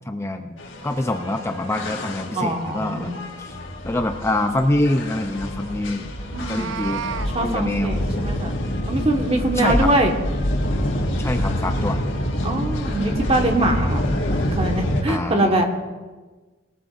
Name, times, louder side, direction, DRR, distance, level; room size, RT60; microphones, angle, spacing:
voice 1, 0.0-3.1 3.4-3.6 3.8-6.1 6.4-7.1 7.4-8.0 9.6-9.9 11.2-12.0 15.1-15.6, left 1 dB, 15° left, 6 dB, 0.4 m, -25 dB
sound 1, 0.6-15.0, equal, 80° left, 1.7 m, -26 dB
voice 2, 2.3-3.2 6.2-6.7 7.3-8.6 8.9-10.1 12.4-14.1 14.5-15.6, right 1 dB, 30° right, 3 dB, 1.4 m, -23 dB
Meow, 6.2-7.3, right 7 dB, 75° right, 0.4 m, -32 dB
20.0 x 13.5 x 2.5 m, 1.3 s
head